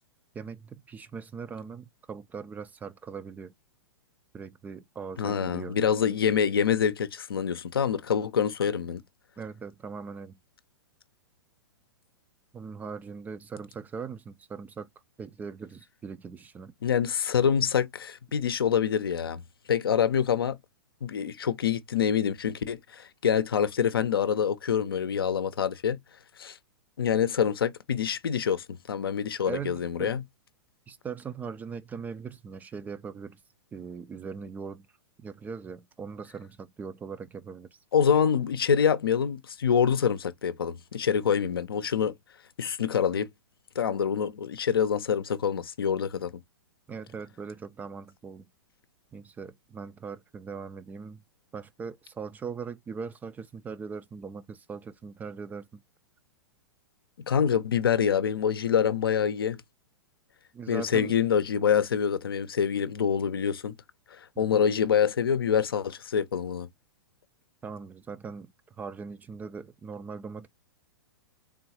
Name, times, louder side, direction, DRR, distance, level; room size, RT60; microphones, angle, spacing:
voice 1, 0.3-3.5 4.3-5.8 9.4-10.4 12.5-14.9 15.2-16.7 29.5-30.2 30.9-33.4 33.7-34.9 35.2-37.8 46.9-48.5 49.1-51.2 51.5-55.8 60.5-61.1 64.4-64.6 67.6-68.5 68.8-70.5, right 5 dB, 15° right, 0.4 m, -40 dB
voice 2, 5.2-9.0 16.8-19.4 19.7-20.6 21.0-26.0 26.4-26.6 27.0-30.2 37.9-42.1 42.6-43.3 43.8-46.3 57.3-59.6 60.7-63.7 64.1-66.7, left 7 dB, 70° left, 0.6 m, -26 dB
3.8 x 3.6 x 2.8 m
figure-of-eight pair, 110°, 13 cm